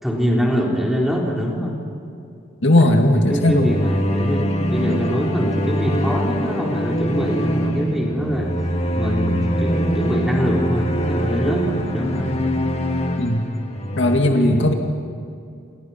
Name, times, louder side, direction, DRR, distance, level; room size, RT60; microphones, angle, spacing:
voice 1, 0.0-1.8 2.8-8.5 8.9-12.3 14.2-14.7, equal, ahead, -2 dB, 4.0 m, -24 dB
voice 2, 2.6-3.8 13.2-13.5 14.0-14.7, left 1 dB, 60° left, 3 dB, 2.1 m, -17 dB
sound 1, 3.2-14.2, equal, 30° left, 1.8 m, -23 dB
28.5 x 28.0 x 5.9 m, 2.5 s
head